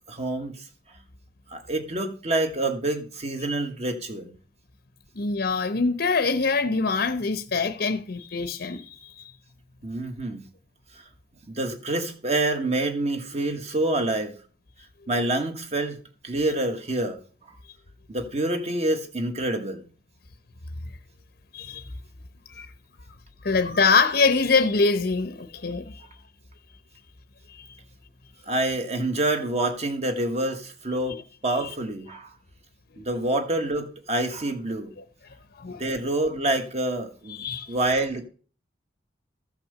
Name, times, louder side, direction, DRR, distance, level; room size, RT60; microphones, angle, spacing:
voice 1, 0.1-0.6 1.5-4.3 9.8-10.4 11.5-14.3 15.1-16.0 16.2-17.2 18.1-19.8 28.5-32.3 33.0-34.9 35.8-38.3, right 2 dB, 35° right, 1.7 m, -27 dB
voice 2, 5.2-9.3 21.5-21.8 22.5-22.7 23.4-26.0 27.5-27.8 31.6-31.7 32.9-33.0 35.6-35.8 37.3-37.7, left 4 dB, 60° left, 0.8 m, -24 dB
14.5 x 5.9 x 6.7 m
head